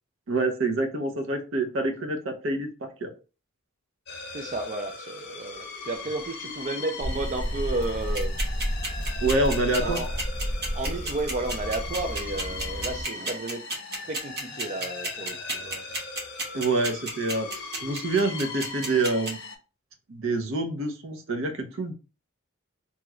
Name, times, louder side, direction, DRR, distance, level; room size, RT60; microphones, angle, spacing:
voice 1, 0.3-3.1 9.2-10.0 16.5-17.5 17.8-19.4 20.1-21.9, right 2 dB, 75° right, 4 dB, 0.7 m, -26 dB
sound 1, 4.1-19.6, left 3 dB, 55° left, 0.8 m, -39 dB
voice 2, 4.3-8.3 9.8-10.1 10.7-13.6 14.0-15.9, right 2 dB, 35° right, 4 dB, 0.4 m, -32 dB
sound 2, 7.0-13.0, equal, 5° left, 0.9 m, -32 dB
sound 3, 8.0-19.3, right 2 dB, 55° right, 1.1 m, -31 dB
2.9 x 2.4 x 3.0 m, 0.34 s
head